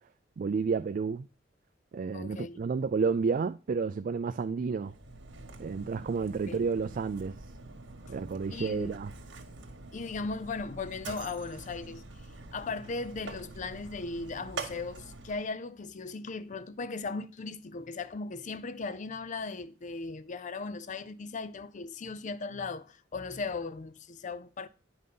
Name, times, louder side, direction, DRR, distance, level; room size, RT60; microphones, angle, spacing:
voice 1, 0.4-1.3 1.9-4.9 5.6-7.4 8.1-9.1, right 5 dB, 45° right, 0.3 m, -31 dB
voice 2, 2.1-2.6 6.5-6.7 8.5-9.0 9.9-12.0 12.5-24.7, left 4 dB, 40° left, 0.5 m, -37 dB
Mechanisms, 4.7-15.5, right 3 dB, 75° right, 1.5 m, -45 dB
9.7 x 5.5 x 3.8 m
head